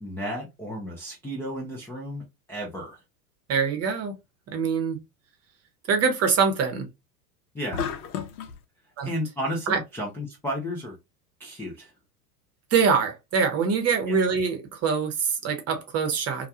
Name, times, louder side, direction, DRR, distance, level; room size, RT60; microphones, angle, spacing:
voice 1, 0.0-3.0 7.5-7.9 9.0-11.0 11.4-11.9 14.1-14.2, equal, 5° left, 0.4 m, -33 dB
voice 2, 3.5-4.2 4.5-5.0 5.9-6.9 9.0-9.1 9.7-9.8 12.7-16.5, right 6 dB, 30° right, 0.8 m, -24 dB
sound 1, 7.7-8.6, left 7 dB, 70° left, 0.7 m, -32 dB
2.3 x 2.2 x 2.7 m
hypercardioid pair, 100°, 49 cm